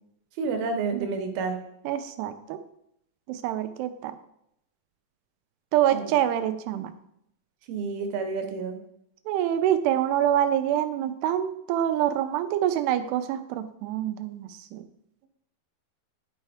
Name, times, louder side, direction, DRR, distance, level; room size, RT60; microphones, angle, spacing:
voice 1, 0.4-1.6 5.9-6.1 7.7-8.8, right 4 dB, 75° right, 5 dB, 2.6 m, -29 dB
voice 2, 1.9-2.6 3.3-4.2 5.7-6.9 9.3-14.9, right 11 dB, 90° right, 9 dB, 2.7 m, -26 dB
12.0 x 4.5 x 3.5 m, 0.76 s
omnidirectional pair, 4.6 m